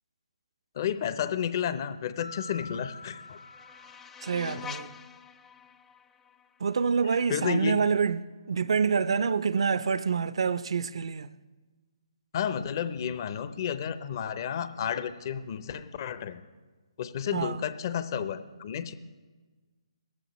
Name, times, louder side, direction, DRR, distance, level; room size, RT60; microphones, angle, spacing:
voice 1, 0.8-3.4 4.4-4.7 7.3-7.8 12.3-16.4 17.0-18.9, left 8 dB, 40° left, 0.7 m, -32 dB
Mallet percussion, 2.2-4.6, left 3 dB, 85° left, 1.5 m, -46 dB
sound 1, 2.4-7.4, left 7 dB, 10° left, 0.3 m, -47 dB
voice 2, 4.2-4.9 6.6-8.2 8.5-11.3 17.3-17.6, right 6 dB, 65° right, 0.5 m, -27 dB
17.0 x 14.0 x 3.1 m
hypercardioid pair, 150°, 3 cm